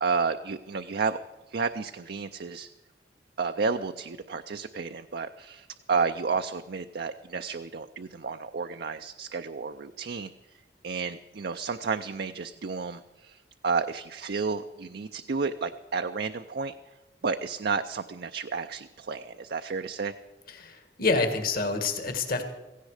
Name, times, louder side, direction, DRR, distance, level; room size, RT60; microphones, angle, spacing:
voice 1, 0.0-1.2 1.5-2.7 3.4-10.3 10.8-13.4 13.6-16.7 17.2-20.1, right 5 dB, 65° right, 7 dB, 0.5 m, -31 dB
voice 2, 20.5-22.4, left 3 dB, 55° left, 7 dB, 1.9 m, -27 dB
16.5 x 16.0 x 4.9 m, 1.1 s
head